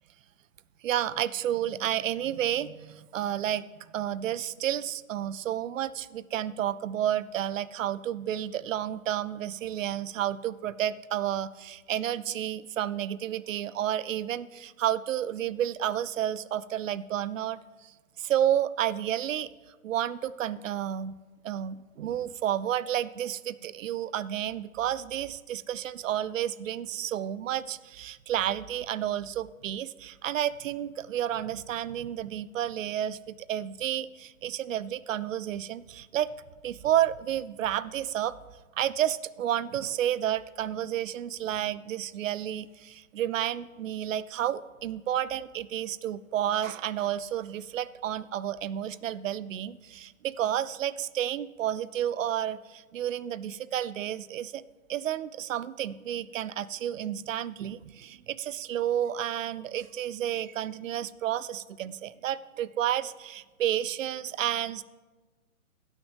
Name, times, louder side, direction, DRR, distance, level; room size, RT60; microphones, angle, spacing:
voice 1, 0.8-17.9 18.2-19.5 19.8-21.1 21.4-36.3 36.6-38.4 38.8-54.6 54.9-64.8, right 11 dB, 65° right, 17 dB, 0.5 m, -31 dB
16.5 x 6.4 x 3.4 m, 1.2 s
hypercardioid pair, 135°, 42 cm